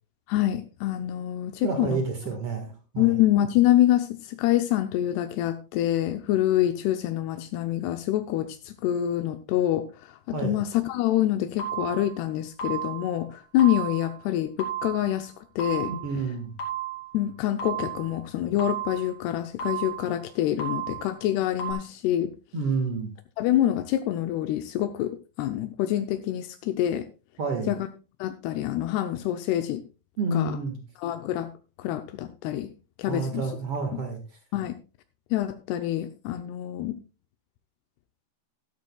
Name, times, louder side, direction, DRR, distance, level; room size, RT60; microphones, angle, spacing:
voice 1, 0.3-2.0 3.0-15.9 17.1-22.3 23.4-25.1 25.4-27.1 27.7-27.9 28.2-29.8 30.3-30.6 31.0-31.5 31.8-32.7 33.0-33.5 33.9-34.0 34.5-34.8 35.3-37.0, left 13 dB, 85° left, 8 dB, 2.3 m, -26 dB
voice 2, 1.6-3.1 10.3-10.6 15.9-16.5 22.5-23.1 27.4-27.7 30.2-30.8 33.1-34.2, right 4 dB, 80° right, 5 dB, 1.3 m, -29 dB
sound 1, 11.6-12.2 12.6-13.2 13.6-14.2 14.6-15.2 15.6-16.2 16.6-17.2 17.6-18.2 18.6-19.2 19.6-20.2 20.6-21.2 21.6-21.7, right 8 dB, 40° left, 3.2 m, -33 dB
13.5 x 12.5 x 2.3 m, 0.31 s
omnidirectional pair, 5.5 m